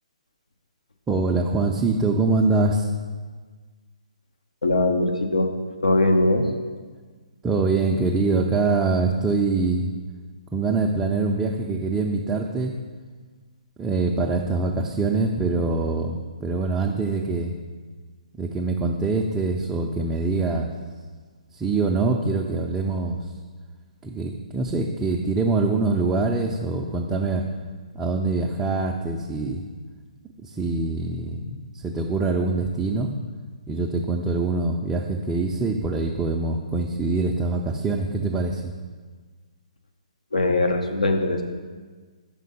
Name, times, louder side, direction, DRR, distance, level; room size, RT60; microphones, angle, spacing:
voice 1, 1.1-2.9 7.4-9.9 10.5-12.7 13.8-17.5 18.4-20.7 21.5-23.3 24.0-27.4 27.9-29.6 30.4-33.1 33.7-38.7, right 3 dB, 10° right, -1 dB, 0.3 m, -24 dB
voice 2, 4.6-5.5 5.8-6.5 40.3-41.4, left 2 dB, 80° left, 4 dB, 0.7 m, -21 dB
5.1 x 3.7 x 5.3 m, 1.5 s
figure-of-eight pair, 130°, 4 cm